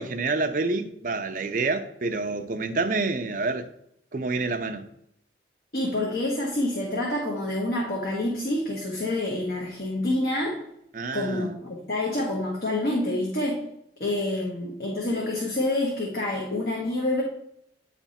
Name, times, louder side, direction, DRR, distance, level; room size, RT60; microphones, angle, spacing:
voice 1, 0.0-3.7 4.1-4.8 10.9-11.5, right 3 dB, 50° right, 0.5 m, -28 dB
voice 2, 5.7-10.6 11.1-13.6 14.0-17.2, left 1 dB, 55° left, 1.2 m, -27 dB
8.9 x 3.4 x 4.2 m
head